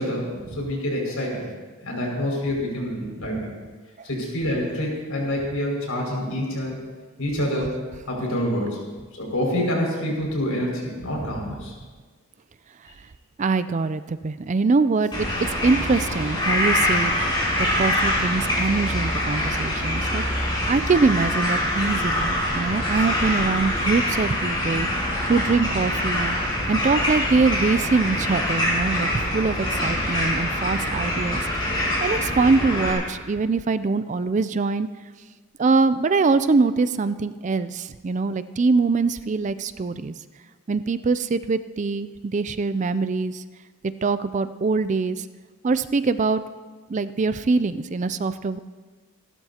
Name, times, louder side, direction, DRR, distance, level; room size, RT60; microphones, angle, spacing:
voice 1, 0.0-1.4 1.8-3.5 4.0-6.8 7.2-7.7 8.1-8.8 9.2-11.7, equal, 80° left, -2 dB, 5.9 m, -27 dB
voice 2, 13.4-15.3 15.6-17.1 17.8-20.2 20.7-24.9 25.3-26.4 26.7-34.9 35.6-40.1 40.7-43.4 44.0-45.3 45.6-46.4 46.9-48.6, right 4 dB, 35° right, 13 dB, 0.4 m, -23 dB
sound 1, 15.1-32.9, left 1 dB, 20° left, 5.3 m, -24 dB
27.5 x 12.5 x 2.9 m, 1.4 s
head